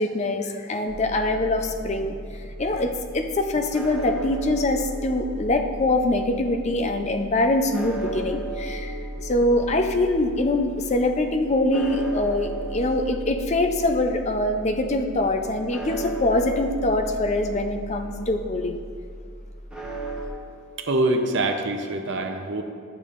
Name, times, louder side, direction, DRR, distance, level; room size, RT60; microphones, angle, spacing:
voice 1, 0.0-18.8, left 2 dB, 30° left, 5 dB, 0.4 m, -24 dB
sound 1, 0.9-20.3, right 1 dB, 5° right, 0.9 m, -35 dB
voice 2, 20.8-22.6, right 2 dB, 60° right, 5 dB, 0.6 m, -24 dB
11.0 x 6.8 x 2.5 m, 2.2 s
head